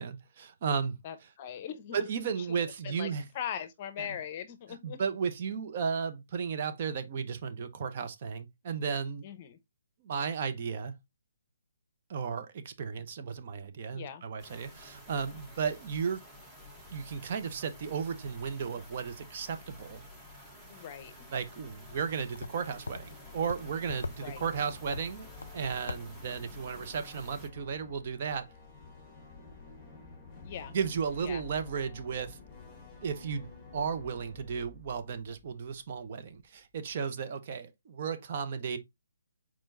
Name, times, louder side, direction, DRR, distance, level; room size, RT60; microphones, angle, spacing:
voice 1, 0.0-1.0 1.9-3.2 4.0-4.1 4.8-9.3 10.0-10.9 12.1-16.2 16.9-20.0 21.3-25.3 25.5-28.5 30.7-32.4 33.0-38.8, right 6 dB, 40° right, 0.7 m, -34 dB
voice 2, 1.0-2.6 2.8-3.1 3.3-5.0 9.2-9.6 13.9-14.2 20.7-21.3 24.2-24.4 30.4-30.7 31.2-31.4, left 9 dB, 35° left, 0.8 m, -40 dB
sound 1, 14.4-27.5, left 1 dB, 5° right, 1.0 m, -51 dB
sound 2, 21.4-26.6, left 3 dB, 85° left, 0.4 m, -45 dB
sound 3, 22.1-36.1, left 4 dB, 10° left, 1.5 m, -51 dB
4.4 x 4.4 x 2.5 m
hypercardioid pair, 155°, 0 cm